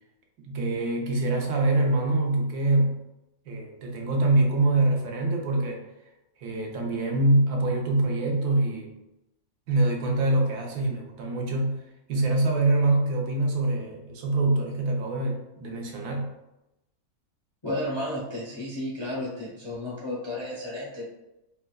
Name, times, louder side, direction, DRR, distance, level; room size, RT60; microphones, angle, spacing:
voice 1, 0.4-3.1 3.5-5.8 6.4-8.9 9.7-11.8 12.1-16.3, right 2 dB, 75° right, 0 dB, 1.2 m, -24 dB
voice 2, 17.6-21.1, left 1 dB, 40° left, -7 dB, 0.3 m, -32 dB
4.4 x 2.2 x 2.2 m, 0.93 s
omnidirectional pair, 1.6 m